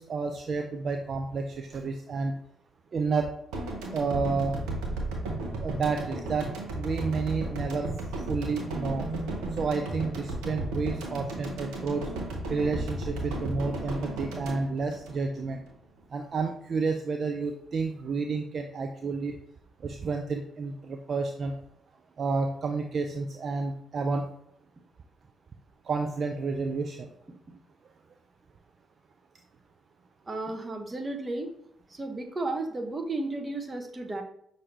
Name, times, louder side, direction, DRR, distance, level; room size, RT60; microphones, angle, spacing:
voice 1, 0.0-2.3 2.9-3.3 3.9-4.6 5.6-6.5 6.8-7.9 8.3-9.1 9.6-12.0 12.5-15.6 16.1-19.3 19.8-21.5 22.2-24.3 25.9-27.1, right 4 dB, 50° right, 5 dB, 0.3 m, -30 dB
sound 1, 3.5-15.7, right 2 dB, 75° right, 0.7 m, -34 dB
voice 2, 30.3-31.5 31.9-34.2, right 2 dB, 30° right, 5 dB, 0.8 m, -33 dB
5.6 x 2.6 x 3.2 m, 0.71 s
hypercardioid pair, 40°, 0 cm